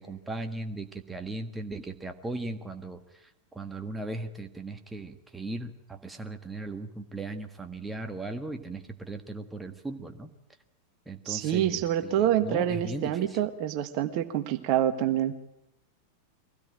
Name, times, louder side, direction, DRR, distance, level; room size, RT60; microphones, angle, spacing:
voice 1, 0.0-3.0 3.5-10.3 11.1-13.4, right 2 dB, 10° right, 6 dB, 1.6 m, -37 dB
voice 2, 11.2-15.3, right 11 dB, 45° right, 9 dB, 1.4 m, -27 dB
23.5 x 17.0 x 9.0 m, 0.86 s
figure-of-eight pair, 90°, 0 cm